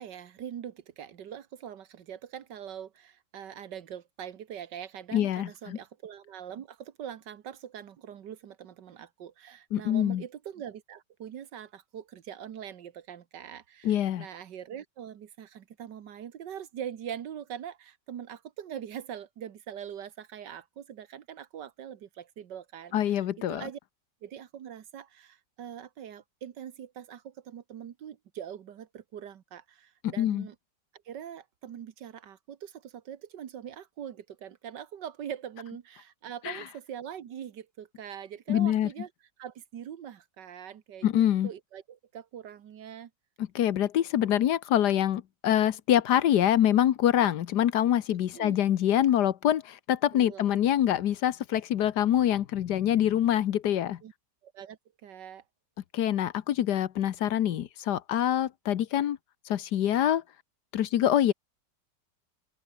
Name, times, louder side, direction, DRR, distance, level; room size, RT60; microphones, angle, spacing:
voice 1, 0.0-23.2 23.5-23.8 24.2-30.6 31.1-39.1 39.4-43.1 48.4-48.6 50.1-50.5 54.0-54.1 54.4-55.4, right 9 dB, 75° right, 1.8 m, -43 dB
voice 2, 5.1-5.8 9.7-10.2 13.8-14.3 22.9-23.6 30.0-30.4 36.4-36.6 38.5-38.9 41.0-41.5 43.5-54.0 55.9-59.2 59.5-60.2 60.7-61.3, left 11 dB, 70° left, 1.4 m, -25 dB
open air
omnidirectional pair, 1.9 m